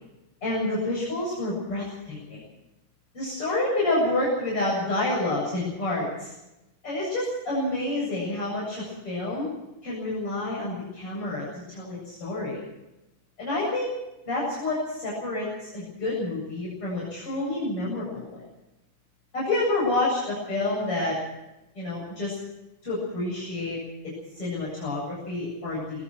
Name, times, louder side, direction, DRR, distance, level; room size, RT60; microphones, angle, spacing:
voice 1, 0.4-2.4 3.1-6.3 6.8-9.5 9.8-12.6 13.4-13.9 14.3-18.4 19.3-21.2 21.8-22.4 22.8-23.8 24.3-26.0, left 2 dB, 40° left, -6 dB, 9.0 m, -28 dB
26.0 x 23.5 x 4.6 m, 0.95 s
omnidirectional pair, 3.7 m